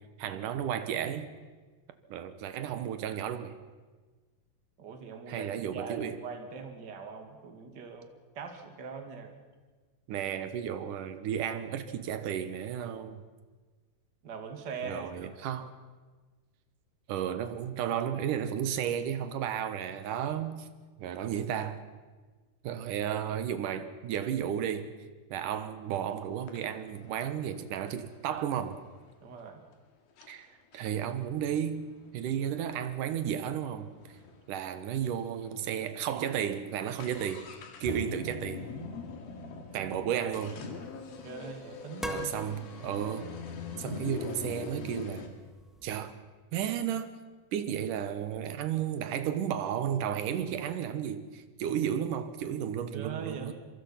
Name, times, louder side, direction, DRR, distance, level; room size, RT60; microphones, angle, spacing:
voice 1, 0.2-1.3 2.1-3.6 5.3-6.2 10.1-13.2 14.8-15.7 17.1-20.7 21.0-21.8 22.6-24.9 25.3-28.8 30.3-30.5 30.7-33.9 34.5-37.5 37.8-38.6 39.7-40.6 42.0-43.3 43.8-45.3 45.8-46.1 46.5-47.1 47.5-53.5, right 9 dB, 70° right, 2.6 m, -33 dB
voice 2, 4.8-8.1 8.3-9.3 14.2-15.3 29.2-29.7 41.2-42.5 52.9-53.5, right 5 dB, 35° right, 2.4 m, -42 dB
sound 1, 25.9-26.0 26.5-29.1 29.7-29.8 30.2-30.3 30.7-34.4 34.7-34.8 35.0-35.1 35.7-35.8 36.1-45.3, left 4 dB, 80° left, 4.1 m, -43 dB
sound 2, 40.2-46.1, left 1 dB, ahead, 0.5 m, -45 dB
26.0 x 23.5 x 5.8 m
omnidirectional pair, 4.2 m